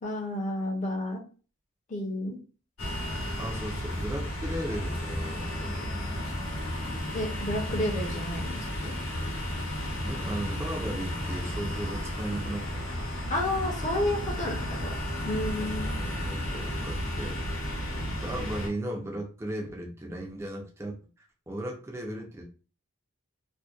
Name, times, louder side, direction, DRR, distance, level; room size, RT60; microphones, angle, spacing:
voice 1, 0.0-1.2 1.9-2.4 7.1-8.9 13.3-14.9 15.2-15.9, left 1 dB, 35° left, 0 dB, 0.6 m, -31 dB
sound 1, 2.8-18.7, left 1 dB, 80° left, 0.9 m, -33 dB
voice 2, 3.4-5.9 10.0-12.8 15.3-17.5 18.2-22.4, right 1 dB, 15° right, 0 dB, 0.4 m, -36 dB
2.6 x 2.1 x 2.3 m, 0.38 s
head